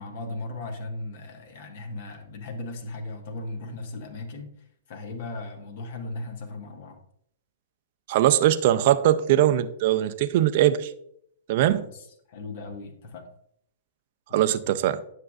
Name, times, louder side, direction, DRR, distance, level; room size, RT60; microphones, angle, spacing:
voice 1, 0.0-4.6 4.9-7.0 11.9-13.3 14.3-14.5, left 2 dB, 55° left, 5 dB, 1.4 m, -37 dB
voice 2, 8.1-10.9 11.5-11.9 14.3-15.0, right 12 dB, 50° right, 11 dB, 0.5 m, -21 dB
9.6 x 6.6 x 2.5 m, 0.71 s
hypercardioid pair, 120°, 0 cm